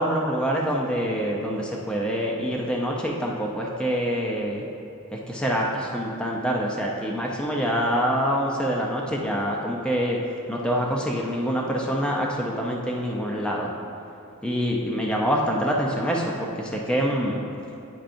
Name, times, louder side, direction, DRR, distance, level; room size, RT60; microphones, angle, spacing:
voice 1, 0.0-4.6 5.1-10.2 10.5-13.7 14.4-17.4, equal, 5° left, -2 dB, 0.5 m, -25 dB
10.0 x 4.5 x 2.6 m, 2.8 s
head